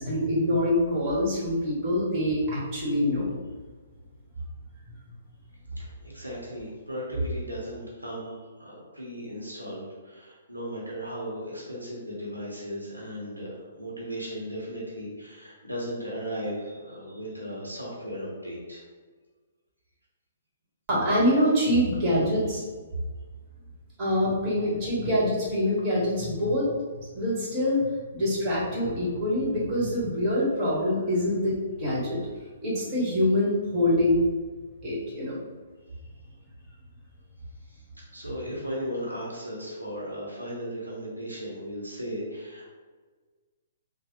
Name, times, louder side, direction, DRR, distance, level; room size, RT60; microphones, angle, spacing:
voice 1, 0.0-3.3 4.9-5.0 20.9-22.6 24.0-27.9 28.1-32.2 32.6-34.2 34.8-35.4, left 1 dB, 30° right, -6 dB, 1.2 m, -25 dB
voice 2, 5.7-18.8 37.7-42.7, equal, 90° right, -4 dB, 0.8 m, -36 dB
3.1 x 2.0 x 3.0 m, 1.4 s
figure-of-eight pair, 120°, 0 cm